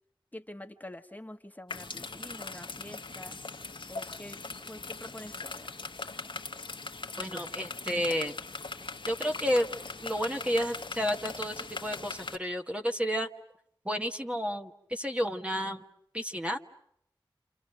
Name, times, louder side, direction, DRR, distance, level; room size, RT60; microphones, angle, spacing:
voice 1, 0.3-3.4 3.9-4.4 4.7-5.7, left 1 dB, 20° left, 6 dB, 1.4 m, -46 dB
sound 1, 1.7-12.4, left 3 dB, 70° left, 1.3 m, -40 dB
voice 2, 7.2-8.3 9.1-9.7 10.0-13.3 13.8-15.8 16.1-16.6, equal, 15° right, 3 dB, 1.2 m, -31 dB
29.5 x 28.5 x 6.5 m, 0.72 s
wide cardioid pair, 65°, 9 cm